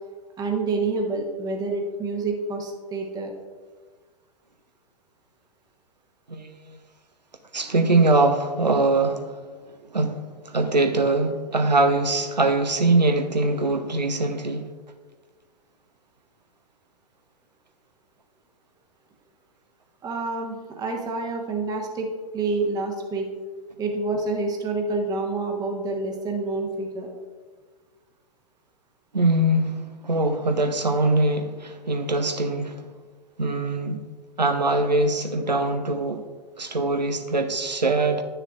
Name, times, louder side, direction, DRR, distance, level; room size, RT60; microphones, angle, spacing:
voice 1, 0.4-3.3 20.0-22.1 22.3-23.3 23.8-27.1, right 3 dB, 20° right, 3 dB, 1.0 m, -28 dB
voice 2, 6.3-6.8 7.5-9.4 9.9-14.6 29.1-32.9 33.4-34.0 34.4-36.2 36.6-38.2, right 2 dB, 80° right, 7 dB, 0.8 m, -22 dB
10.5 x 6.6 x 2.5 m, 1.4 s
figure-of-eight pair, 105°, 21 cm